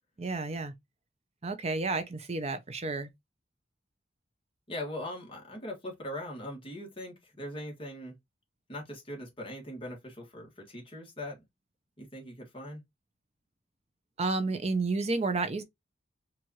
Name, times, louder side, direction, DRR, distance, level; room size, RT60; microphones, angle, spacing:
voice 1, 0.2-0.7 1.4-3.1 14.2-15.6, right 3 dB, 35° right, 0.6 m, -31 dB
voice 2, 4.7-8.1 8.7-11.4 12.0-12.8, left 1 dB, 25° left, 1.4 m, -40 dB
4.5 x 2.5 x 2.8 m
head